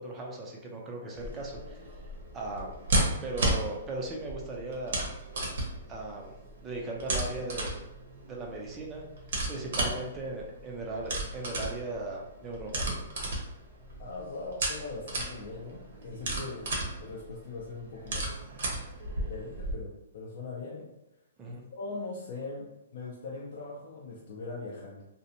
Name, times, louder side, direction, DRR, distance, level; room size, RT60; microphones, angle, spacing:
voice 1, 0.0-1.8 2.3-2.7 3.2-5.1 5.9-6.3 6.6-7.8 8.2-9.0 9.5-12.9 21.4-21.6, right 2 dB, 15° right, -1 dB, 0.4 m, -37 dB
sound 1, 1.1-19.7, right 1 dB, 60° right, 0.8 m, -34 dB
voice 2, 9.6-10.0 14.0-18.2 19.3-20.9 21.5-25.0, left 3 dB, 50° left, -3 dB, 0.5 m, -41 dB
2.6 x 2.1 x 2.7 m, 0.92 s
hypercardioid pair, 165°, 0 cm